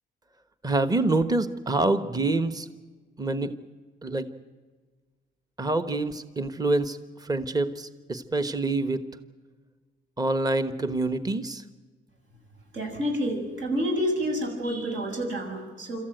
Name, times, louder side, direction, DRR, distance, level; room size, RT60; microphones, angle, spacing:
voice 1, 0.6-2.7 3.2-3.5 4.0-4.3 5.6-7.0 7.2-9.0 10.2-11.6, right 2 dB, 20° right, 11 dB, 1.2 m, -26 dB
voice 2, 12.7-16.0, equal, 70° right, 2 dB, 7.0 m, -28 dB
26.5 x 14.0 x 9.2 m, 1.4 s
cardioid pair, 90°, 20 cm